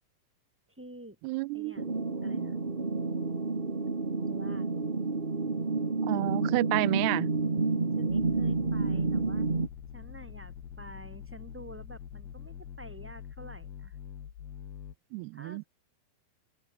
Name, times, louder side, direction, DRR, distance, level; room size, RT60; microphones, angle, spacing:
voice 1, 0.7-1.2 1.5-1.8 2.2-2.6 4.3-4.7 7.9-9.5 9.9-14.0 15.3-15.7, right 1 dB, 5° right, 5.9 m, -48 dB
voice 2, 1.2-1.8 6.0-7.3 15.1-15.6, right 22 dB, 90° right, 2.6 m, -30 dB
sound 1, 1.8-9.7, right 3 dB, 60° right, 0.5 m, -30 dB
sound 2, 8.1-15.0, left 9 dB, 80° left, 4.6 m, -45 dB
open air
omnidirectional pair, 4.6 m